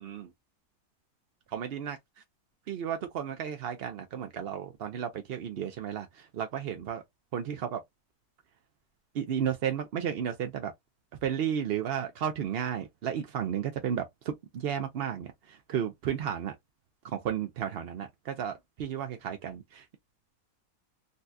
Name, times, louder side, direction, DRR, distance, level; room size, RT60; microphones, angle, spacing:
voice 1, 1.5-2.0 2.7-6.1 6.3-7.0 7.3-7.8 9.1-10.7 11.2-16.5 17.0-19.8, right 9 dB, 70° right, 0.5 m, -33 dB
4.0 x 2.2 x 2.5 m
omnidirectional pair, 1.7 m